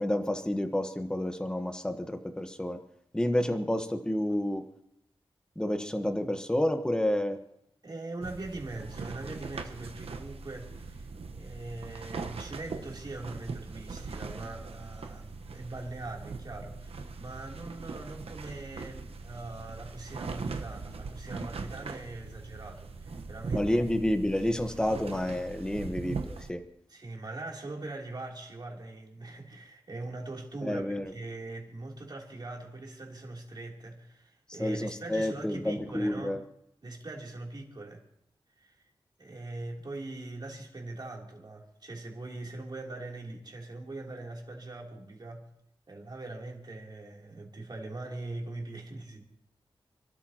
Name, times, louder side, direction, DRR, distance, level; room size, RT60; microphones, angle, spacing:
voice 1, 0.0-2.8 3.1-4.6 5.6-7.4 23.5-26.6 30.6-31.1 34.6-36.4, left 1 dB, 10° left, 1.2 m, -29 dB
voice 2, 7.8-23.9 26.9-36.4 36.8-38.0 38.6-38.8 39.2-45.5 45.9-49.2, right 2 dB, 45° right, 3.2 m, -42 dB
sound 1, 8.2-26.5, right 4 dB, 85° right, 1.1 m, -40 dB
28.5 x 13.0 x 3.0 m
wide cardioid pair, 105°, 10 cm